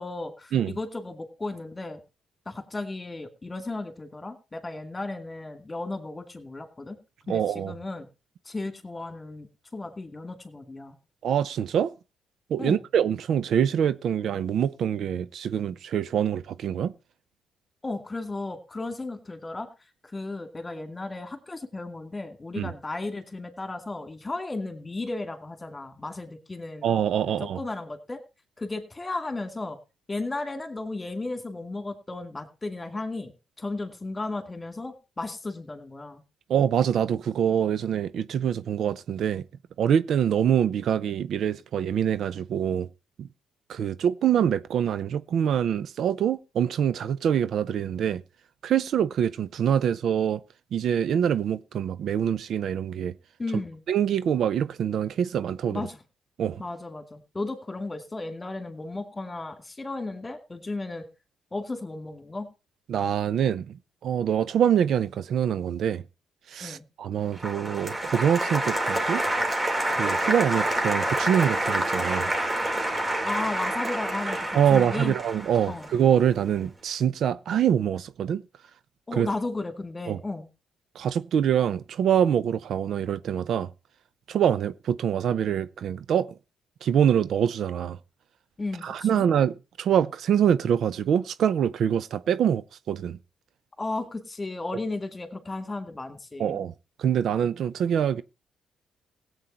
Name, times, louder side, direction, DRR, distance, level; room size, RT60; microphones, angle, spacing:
voice 1, 0.0-2.0 2.5-7.0 7.3-8.1 8.5-9.5 9.7-11.0 12.6-12.8 17.8-19.7 20.0-26.9 27.4-28.2 28.6-29.8 30.1-33.3 33.6-36.2 53.4-53.8 55.7-56.0 56.6-61.1 61.5-62.5 66.6-66.8 73.2-75.1 75.6-75.9 79.1-80.5 88.6-89.3 93.8-96.6, left 2 dB, 20° left, 2.4 m, -34 dB
voice 2, 7.3-7.7 11.2-11.9 12.5-16.9 22.6-22.7 26.8-27.6 36.5-39.4 39.8-42.9 43.2-43.3 43.7-48.2 48.6-50.4 50.7-53.1 53.9-55.8 56.4-56.6 62.9-63.8 64.0-66.0 66.5-69.2 69.9-72.3 74.5-78.4 79.1-79.3 80.1-80.2 81.0-83.7 84.3-86.3 86.8-88.0 88.8-93.2 96.4-96.7 97.0-98.2, right 9 dB, 65° right, 0.6 m, -25 dB
Applause, 67.4-76.4, right 1 dB, 20° right, 2.7 m, -28 dB
16.5 x 8.1 x 4.4 m
cardioid pair, 90°, 0 cm